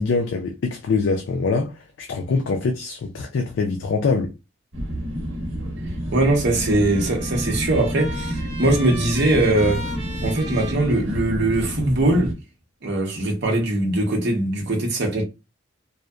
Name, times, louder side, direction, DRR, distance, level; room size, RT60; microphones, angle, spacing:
voice 1, 0.0-1.7 2.0-4.3, left 4 dB, 70° left, 0.4 m, -23 dB
sound 1, 4.7-12.3, equal, 85° right, 0.9 m, -29 dB
Trumpet, 6.0-11.6, equal, 20° right, 1.0 m, -39 dB
voice 2, 6.1-9.9 10.2-12.3 12.8-15.2, right 2 dB, 60° right, 0.8 m, -21 dB
2.7 x 2.0 x 2.2 m
head